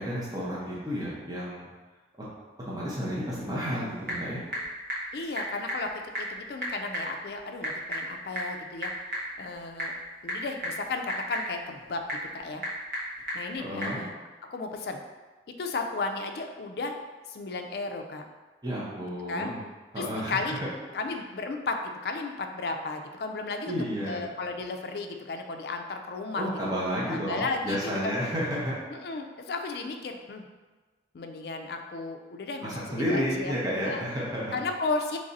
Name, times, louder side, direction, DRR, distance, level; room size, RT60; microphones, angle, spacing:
voice 1, 0.0-1.6 2.7-4.4 13.6-14.0 18.6-19.6 19.9-20.6 23.7-24.2 26.4-28.7 32.6-34.6, equal, 20° right, -7 dB, 0.7 m, -31 dB
Typing / Telephone, 3.5-14.0, equal, 50° right, 0.9 m, -36 dB
voice 2, 5.1-8.9 9.4-9.9 10.2-12.6 13.3-14.1 14.5-15.0 15.6-17.0 17.3-18.3 19.3-19.5 20.0-20.6 20.9-23.8 24.0-26.5 27.1-28.1 28.9-30.4 31.1-33.5 33.8-34.1 34.5-35.2, left 3 dB, 65° left, 4 dB, 0.3 m, -34 dB
3.2 x 2.6 x 3.9 m, 1.3 s
head